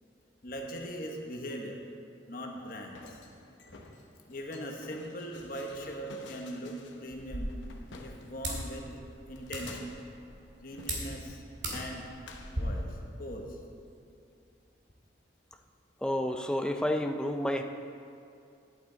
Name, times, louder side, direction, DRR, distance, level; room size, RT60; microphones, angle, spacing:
voice 1, 0.4-1.8 2.3-3.2 3.7-3.8 4.3-7.6 8.0-8.8 9.3-10.0 10.6-11.4 11.7-12.1 12.6-13.6, equal, 50° left, 1 dB, 1.1 m, -40 dB
sound 1, 2.7-8.7 9.4-10.2 10.7-11.4 11.7-13.2, left 3 dB, 85° left, 0.8 m, -52 dB
sound 2, 7.1-12.6, right 1 dB, 85° right, 2.3 m, -40 dB
voice 2, 16.0-17.6, left 1 dB, 5° left, 5 dB, 0.4 m, -30 dB
11.0 x 8.8 x 3.9 m, 2.5 s
head